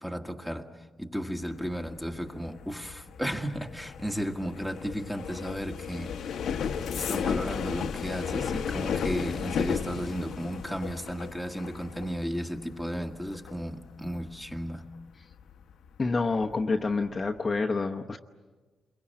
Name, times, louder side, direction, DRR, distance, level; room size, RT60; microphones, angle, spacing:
voice 1, 0.0-6.4 6.9-14.9, equal, 5° right, 1.6 m, -34 dB
sound 1, 1.3-16.0 16.3-16.7 17.0-17.4, left 7 dB, 85° left, 1.1 m, -35 dB
voice 2, 16.0-18.2, left 3 dB, 30° left, 0.9 m, -28 dB
28.0 x 23.0 x 8.6 m
cardioid pair, 125°, 0 cm